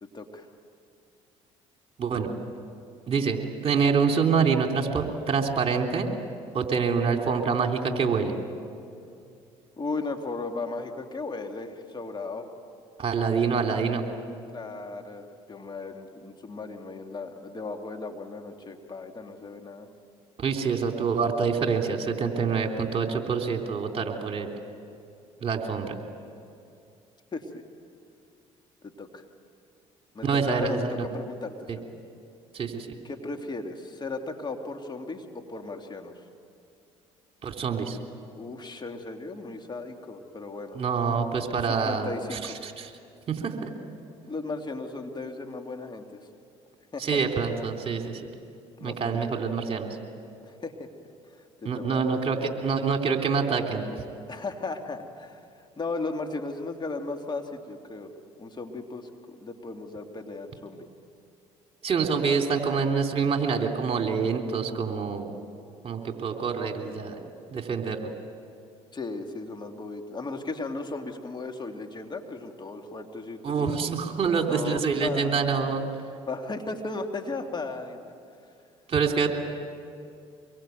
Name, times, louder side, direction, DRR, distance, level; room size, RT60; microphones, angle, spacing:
voice 1, 0.0-0.5 9.8-12.5 14.5-19.9 27.3-27.6 28.8-29.3 30.1-31.8 33.0-36.2 38.4-40.8 41.7-42.6 44.3-46.3 46.9-47.2 48.8-49.3 50.4-50.9 51.3-52.0 54.3-55.4 55.8-58.1 58.4-60.8 68.9-73.8 74.4-75.9 76.3-78.1, left 3 dB, 30° left, 4 dB, 2.7 m, -36 dB
voice 2, 2.0-2.3 3.1-3.4 3.6-6.1 6.5-8.3 13.0-14.0 20.4-24.5 25.4-26.0 30.2-31.0 32.5-32.9 37.4-38.0 40.7-42.9 43.3-43.7 47.0-48.2 48.8-49.9 51.6-53.8 61.8-65.3 65.8-68.1 73.4-75.8 78.9-79.3, right 5 dB, 40° right, 3 dB, 3.3 m, -26 dB
25.0 x 22.5 x 9.3 m, 2.5 s
supercardioid pair, 65°, 14 cm